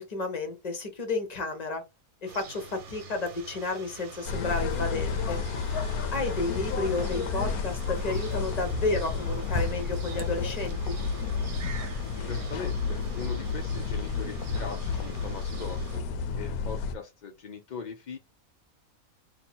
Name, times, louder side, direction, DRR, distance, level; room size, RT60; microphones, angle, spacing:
voice 1, 0.0-1.8 2.2-5.4 6.1-11.0, left 3 dB, 35° left, 0.9 m, -32 dB
sound 1, 2.3-16.0, right 6 dB, 70° right, 1.3 m, -46 dB
sound 2, 4.3-17.0, left 5 dB, 90° left, 1.1 m, -31 dB
voice 2, 12.2-16.1 16.3-18.2, left 5 dB, 60° left, 0.5 m, -40 dB
2.8 x 2.6 x 4.2 m
omnidirectional pair, 1.5 m